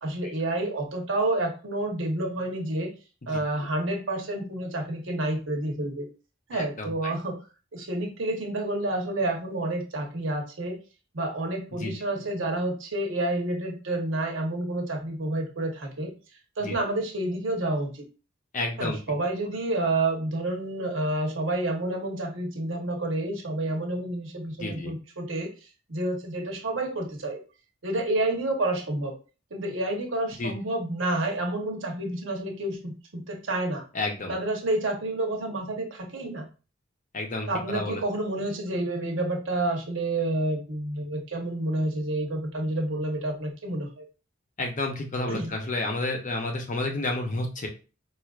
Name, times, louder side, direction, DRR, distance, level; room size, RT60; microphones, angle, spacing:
voice 1, 0.0-2.9 3.3-6.1 6.5-7.4 7.7-10.8 11.1-16.1 16.6-18.0 18.8-25.5 25.9-27.4 27.8-29.1 29.5-33.8 34.3-36.5 37.5-44.0 45.3-45.5, right 2 dB, 70° right, 1 dB, 0.9 m, -29 dB
voice 2, 3.3-3.7 6.5-7.2 11.7-11.9 16.6-16.7 18.5-19.0 24.6-24.9 30.4-30.5 33.9-34.4 37.1-38.0 44.6-47.7, left 2 dB, 40° left, 2 dB, 0.7 m, -31 dB
4.4 x 2.5 x 2.4 m, 0.34 s
head